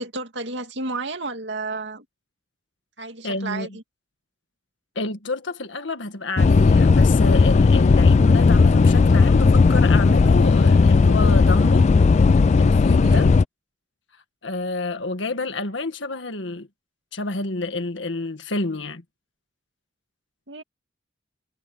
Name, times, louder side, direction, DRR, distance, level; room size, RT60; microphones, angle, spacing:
voice 1, 0.0-2.0 3.0-3.8 12.7-13.3 20.5-20.6, right 3 dB, 70° right, 2.5 m, -32 dB
voice 2, 3.2-3.8 4.9-11.9 12.6-13.3 14.4-16.7 17.1-19.0, left 2 dB, 80° left, 1.7 m, -29 dB
sound 1, 6.4-13.4, left 4 dB, 40° left, 0.3 m, -15 dB
head